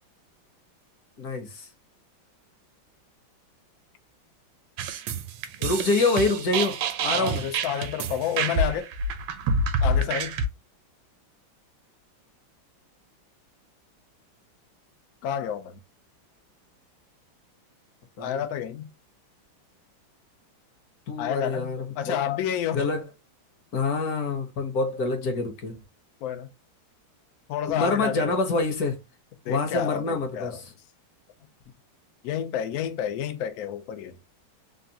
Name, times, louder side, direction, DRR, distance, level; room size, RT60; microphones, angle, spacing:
voice 1, 1.2-1.7 5.6-7.5 18.2-18.4 21.1-22.2 22.7-23.0 23.7-25.8 27.7-29.0 29.5-30.7, left 3 dB, 60° left, 1.0 m, -26 dB
sound 1, 4.8-10.5, right 2 dB, 80° right, 1.3 m, -27 dB
voice 2, 7.1-8.9 9.8-10.4 15.2-15.8 18.2-18.9 21.2-22.9 26.2-26.5 27.5-28.4 29.4-30.6 32.2-34.2, left 9 dB, 80° left, 0.8 m, -30 dB
3.6 x 2.3 x 2.6 m
omnidirectional pair, 2.2 m